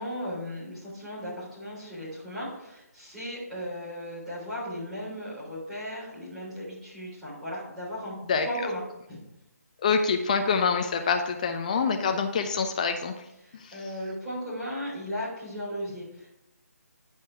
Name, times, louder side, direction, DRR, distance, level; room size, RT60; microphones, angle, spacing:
voice 1, 0.0-8.1 8.4-8.8 9.1-9.2 13.4-16.4, equal, ahead, -12 dB, 3.7 m, -36 dB
voice 2, 9.8-13.2 13.6-13.8, left 5 dB, 25° left, 6 dB, 0.5 m, -26 dB
9.9 x 5.3 x 4.7 m, 0.87 s
figure-of-eight pair, 145°, 9 cm